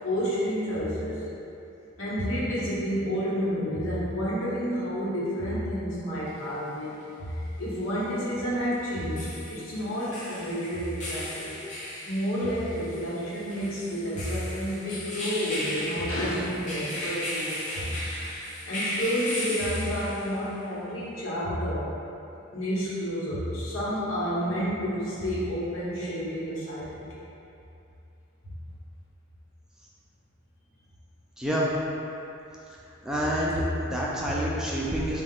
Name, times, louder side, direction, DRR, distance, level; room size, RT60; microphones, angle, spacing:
voice 1, 0.0-1.1 2.0-11.5 12.0-18.0 18.6-21.9 22.5-27.0, equal, 85° left, -9 dB, 1.0 m, -30 dB
sound 1, 6.3-6.4 8.9-20.5, left 1 dB, 40° left, 0.7 m, -36 dB
voice 2, 31.4-31.7 33.0-35.2, equal, 5° right, -6 dB, 0.3 m, -28 dB
3.7 x 2.3 x 3.7 m, 2.8 s
head